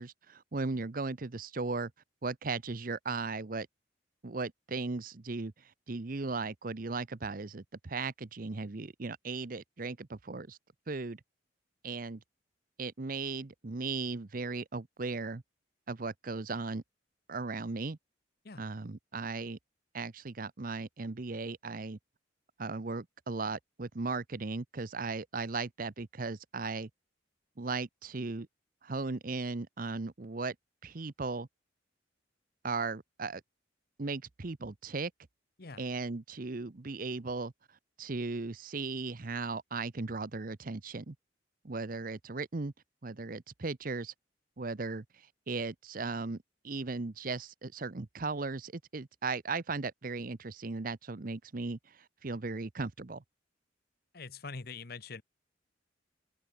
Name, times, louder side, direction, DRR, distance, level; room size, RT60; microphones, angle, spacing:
voice 1, 0.0-1.9 2.2-3.7 4.2-10.6 10.9-11.2 11.8-12.2 12.8-15.4 15.9-16.8 17.3-18.0 18.6-19.6 19.9-22.0 22.6-26.9 27.6-28.5 28.8-30.5 30.8-31.5 32.6-33.4 34.0-35.1 35.8-37.5 38.0-41.2 41.6-42.7 43.0-44.1 44.6-53.2, right 3 dB, 45° right, 0.8 m, -37 dB
voice 2, 54.1-55.2, left 4 dB, 55° left, 1.1 m, -43 dB
open air
head